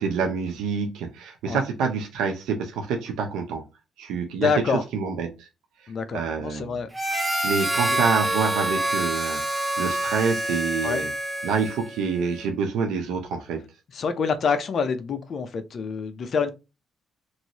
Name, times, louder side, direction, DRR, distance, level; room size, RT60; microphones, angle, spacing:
voice 1, 0.0-3.6 4.0-4.5 4.9-5.5 6.1-6.8 7.4-11.1 11.4-13.6, right 5 dB, 90° right, 0.6 m, -27 dB
voice 2, 4.4-4.8 5.9-6.9 7.9-8.0 10.8-11.0 13.9-16.5, left 5 dB, 55° left, 0.6 m, -26 dB
Harmonica, 6.9-12.0, right 1 dB, 15° right, 0.7 m, -26 dB
3.1 x 2.7 x 2.8 m
cardioid pair, 90°, 0 cm